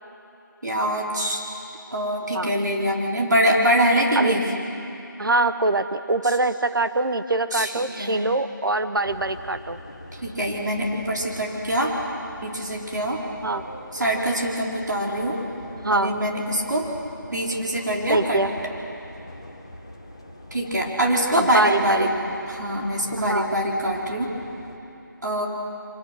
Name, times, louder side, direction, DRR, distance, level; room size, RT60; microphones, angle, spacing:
voice 1, 0.6-1.4 1.9-4.4 7.5-8.2 10.1-12.0 12.4-13.2 13.9-15.4 15.9-16.9 17.3-18.4 20.5-22.1 22.5-24.3 25.2-25.5, equal, 60° right, -2 dB, 4.0 m, -24 dB
voice 2, 5.2-9.8 13.4-13.6 15.8-16.1 18.1-18.5 21.4-22.1 23.2-23.5, right 2 dB, 80° right, 11 dB, 1.0 m, -23 dB
sound 1, 9.0-24.8, left 1 dB, 15° left, 0.8 m, -42 dB
25.0 x 18.0 x 6.4 m, 2.8 s
figure-of-eight pair, 180°, 11 cm